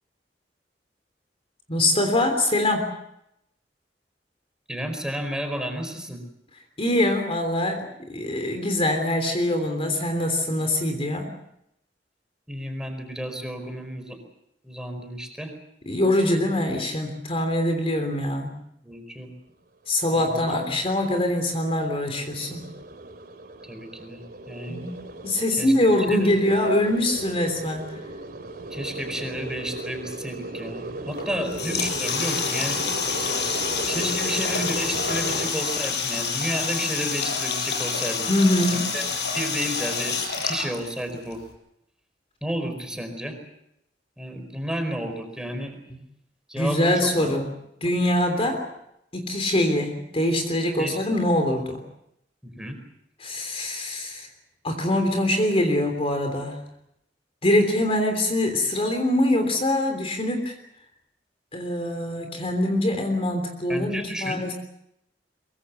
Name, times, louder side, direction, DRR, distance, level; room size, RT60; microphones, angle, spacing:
voice 1, 1.7-2.9 6.8-7.8 8.1-11.3 15.9-18.6 19.9-22.6 24.7-24.9 25.2-28.0 38.3-38.8 46.6-47.5 47.8-48.7 49.1-51.8 53.2-54.3 54.6-56.6 57.4-60.6 61.5-64.5, left 1 dB, 35° left, 5 dB, 3.3 m, -23 dB
voice 2, 4.7-6.2 12.5-14.2 14.6-15.5 18.8-19.3 20.1-20.8 23.6-24.8 25.6-26.3 28.7-33.1 33.9-38.3 38.7-39.1 39.3-40.2 40.4-41.4 42.4-43.4 44.2-45.8 46.5-47.3 50.8-51.0 52.4-52.8 63.7-64.5, equal, 5° right, 5 dB, 4.7 m, -32 dB
sound 1, 20.0-35.5, right 2 dB, 60° right, 2.8 m, -37 dB
Water tap faucet, 31.1-41.3, left 5 dB, 70° left, 6.2 m, -27 dB
23.5 x 23.5 x 7.0 m, 0.80 s
head